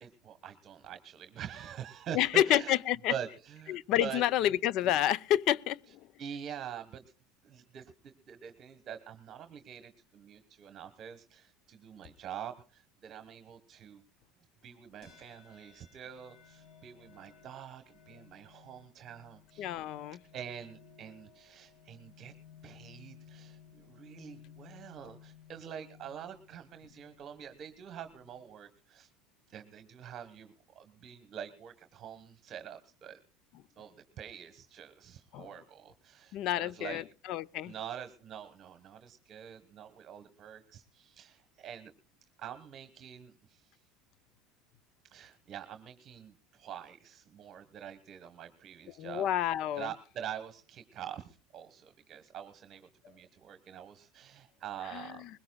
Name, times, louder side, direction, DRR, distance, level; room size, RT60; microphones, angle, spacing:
voice 1, 0.0-2.8 3.1-4.6 6.2-7.0 7.4-7.9 8.3-14.0 14.6-19.7 20.3-22.3 22.6-29.1 29.5-33.2 33.8-37.0 37.6-41.9 42.4-43.7 45.1-49.2 49.8-55.2, right 9 dB, 40° right, 1.2 m, -45 dB
voice 2, 2.1-3.1 3.7-6.0 19.6-20.2 35.3-35.5 36.3-37.0 37.3-37.7 49.0-49.9 54.9-55.1, left 12 dB, 60° left, 0.5 m, -29 dB
sound 1, 15.0-28.5, left 8 dB, 40° left, 6.7 m, -58 dB
21.0 x 16.5 x 2.3 m
supercardioid pair, 115°, 0 cm